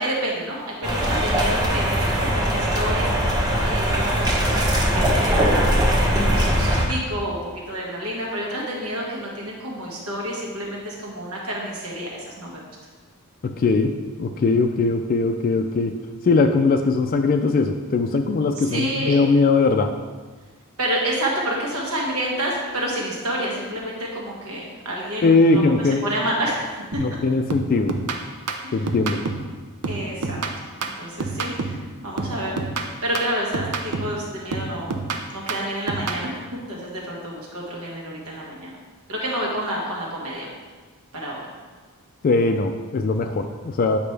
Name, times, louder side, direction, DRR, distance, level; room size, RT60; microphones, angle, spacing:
voice 1, 0.0-3.1 3.6-12.6 18.6-19.2 20.8-26.6 28.6-28.8 29.9-30.4 30.8-32.6 33.0-34.9 35.3-38.7 39.1-40.5 41.1-41.4, right 1 dB, 75° right, -3 dB, 1.8 m, -29 dB
sound 1, 0.8-6.8, equal, 20° right, 1.1 m, -21 dB
voice 2, 13.4-20.0 25.2-26.0 27.0-28.1 28.7-29.2 42.2-44.0, left 3 dB, 40° left, 6 dB, 0.3 m, -20 dB
sound 2, 26.9-27.2 27.5-29.5 29.8-31.9 32.2-34.2 34.5-36.3, right 3 dB, 90° right, 0.7 m, -29 dB
8.7 x 5.1 x 3.3 m, 1.4 s
head